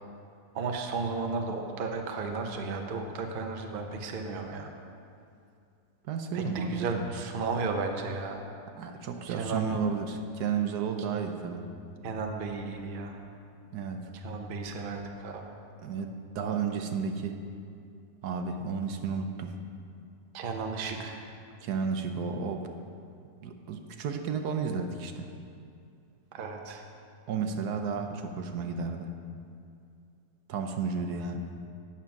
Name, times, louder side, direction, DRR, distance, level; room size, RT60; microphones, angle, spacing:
voice 1, 0.5-4.7 6.3-8.4 9.3-9.8 12.0-13.1 14.2-15.5 20.3-21.2 26.3-26.8, right 4 dB, 45° right, 3 dB, 0.8 m, -34 dB
voice 2, 6.1-7.1 8.8-11.6 13.7-14.0 15.8-17.3 18.2-19.6 21.6-22.7 23.4-25.3 27.3-29.1 30.5-31.5, right 5 dB, 75° right, 5 dB, 1.2 m, -32 dB
9.3 x 7.2 x 5.8 m, 2.5 s
omnidirectional pair, 1.7 m